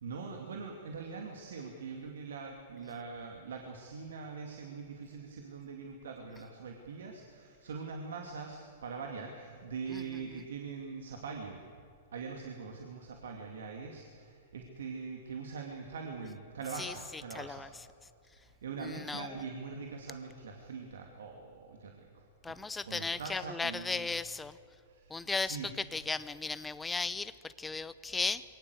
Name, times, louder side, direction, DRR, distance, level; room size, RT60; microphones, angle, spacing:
voice 1, 0.0-11.6 12.1-17.7 18.4-24.1 24.8-25.7, right 5 dB, 75° right, 2 dB, 2.5 m, -43 dB
voice 2, 17.3-17.7 18.8-19.3 22.4-24.6 25.1-28.4, left 4 dB, 10° left, 15 dB, 0.8 m, -36 dB
22.5 x 18.0 x 8.1 m, 2.4 s
hypercardioid pair, 120°, 0 cm